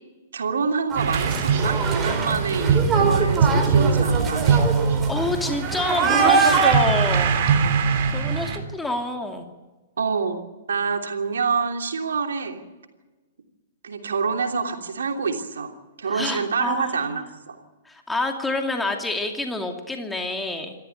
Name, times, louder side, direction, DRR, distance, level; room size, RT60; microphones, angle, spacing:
voice 1, 0.3-4.6 10.0-10.4 10.7-12.6 13.8-15.7 16.0-17.6, right 5 dB, 70° right, 4 dB, 3.0 m, -26 dB
sound 1, 0.9-6.7, right 5 dB, 20° right, 4.3 m, -23 dB
sound 2, 1.0-8.6, right 5 dB, 45° right, 3.4 m, -22 dB
voice 2, 5.1-7.4 8.1-9.5 16.1-17.2 17.9-20.7, left 2 dB, 5° left, 3 dB, 2.6 m, -27 dB
26.5 x 14.0 x 9.2 m, 1.2 s
figure-of-eight pair, 115°, 0 cm